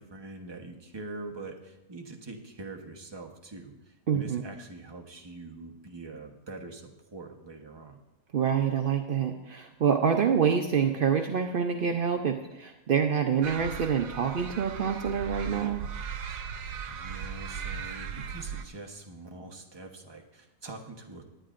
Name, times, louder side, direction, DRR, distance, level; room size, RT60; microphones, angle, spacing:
voice 1, 0.0-8.0 16.9-21.2, right 2 dB, 20° right, 2 dB, 0.9 m, -44 dB
voice 2, 4.1-4.4 8.3-15.8, right 7 dB, 65° right, 4 dB, 0.5 m, -26 dB
sound 1, 13.4-18.6, right 7 dB, 85° right, 1.3 m, -37 dB
19.0 x 10.0 x 2.5 m, 0.92 s
omnidirectional pair, 1.7 m